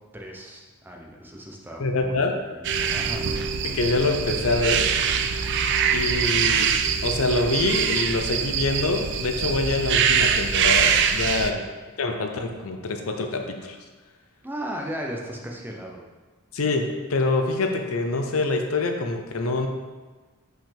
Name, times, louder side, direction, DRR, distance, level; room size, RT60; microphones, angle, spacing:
voice 1, 0.1-2.2 2.5-3.2 11.4-11.7 14.4-16.0, equal, 10° right, 0 dB, 0.6 m, -36 dB
voice 2, 1.8-2.4 3.6-4.8 5.9-6.7 7.0-11.5 12.0-13.8 16.5-19.7, left 3 dB, 65° left, 4 dB, 0.7 m, -25 dB
sound 1, 2.6-11.5, right 7 dB, 50° right, 0.4 m, -23 dB
5.8 x 5.5 x 3.4 m, 1.3 s
head